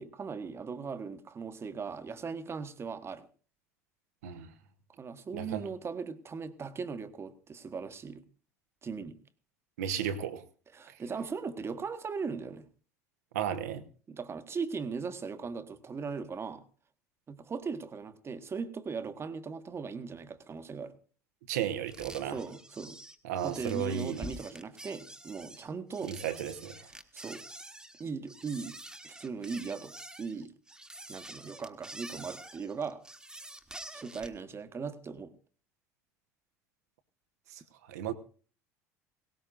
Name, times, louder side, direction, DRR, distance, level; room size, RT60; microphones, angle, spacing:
voice 1, 0.0-3.3 5.0-8.3 8.8-9.2 10.7-12.6 14.1-16.6 17.3-20.9 22.2-23.0 23.4-26.2 27.1-27.4 28.0-28.8 29.0-30.5 31.1-33.0 33.9-35.3, right 5 dB, 30° right, 1.2 m, -38 dB
voice 2, 9.8-10.4 13.3-13.8 21.5-22.4 23.2-24.3 26.0-26.7 37.5-37.6 37.9-38.1, right 9 dB, 75° right, 1.1 m, -34 dB
sound 1, 21.9-34.4, right 1 dB, 10° right, 1.4 m, -47 dB
18.0 x 18.0 x 2.6 m
hypercardioid pair, 65°, 9 cm